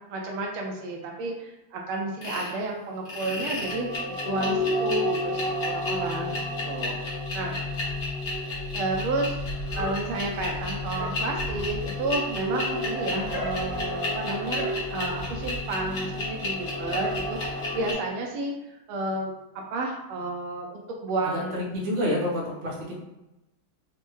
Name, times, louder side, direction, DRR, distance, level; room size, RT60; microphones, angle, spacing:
voice 1, 0.1-6.4 6.6-7.5 8.7-21.6, right 2 dB, 80° right, 0 dB, 1.4 m, -32 dB
sound 1, 2.2-2.5 3.0-17.9, left 2 dB, 45° left, 1.0 m, -30 dB
voice 2, 21.2-22.9, left 1 dB, 50° right, -4 dB, 0.9 m, -28 dB
4.1 x 2.2 x 3.1 m, 0.96 s
omnidirectional pair, 2.4 m